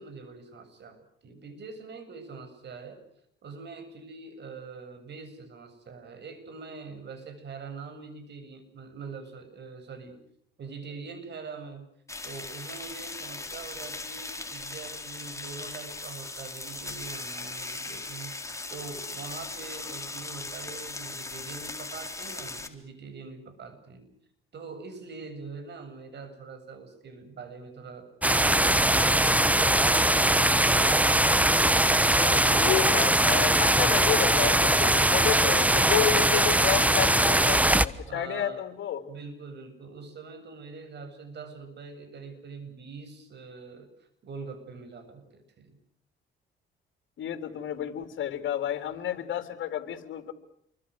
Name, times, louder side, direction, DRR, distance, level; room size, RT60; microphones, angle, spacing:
voice 1, 0.0-3.0 3.4-10.2 10.6-11.9 12.2-18.3 18.7-24.1 24.5-28.1 38.1-38.6 39.1-45.8 48.9-49.2, right 4 dB, 60° right, 9 dB, 7.8 m, -44 dB
sound 1, 12.1-22.7, left 3 dB, 15° left, 3.8 m, -38 dB
sound 2, 28.2-37.9, right 1 dB, 5° right, 1.2 m, -21 dB
voice 2, 32.1-39.0 47.2-50.3, left 11 dB, 70° left, 7 dB, 3.7 m, -31 dB
29.5 x 24.0 x 6.5 m, 0.69 s
cardioid pair, 90°, 20 cm